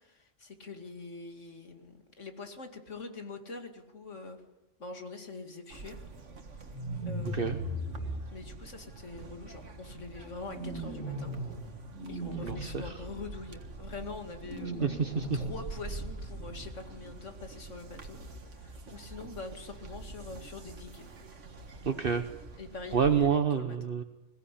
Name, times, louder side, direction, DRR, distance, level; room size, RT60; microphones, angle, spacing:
voice 1, 0.0-4.4 4.8-6.1 6.6-6.7 7.0-7.8 8.3-11.3 12.1-14.9 15.3-18.2 18.5-21.1 22.6-23.8, left 3 dB, 85° left, 6 dB, 2.7 m, -44 dB
sound 1, 5.7-23.3, right 3 dB, 85° right, 2.0 m, -46 dB
sound 2, 6.7-8.1 10.5-11.6 11.9-12.6 14.4-15.6, right 1 dB, 55° left, 8.5 m, -37 dB
voice 2, 12.4-12.9 14.8-15.4 21.8-22.2 22.9-24.0, right 6 dB, 50° right, 7 dB, 1.2 m, -28 dB
22.0 x 16.5 x 10.0 m, 0.95 s
omnidirectional pair, 1.2 m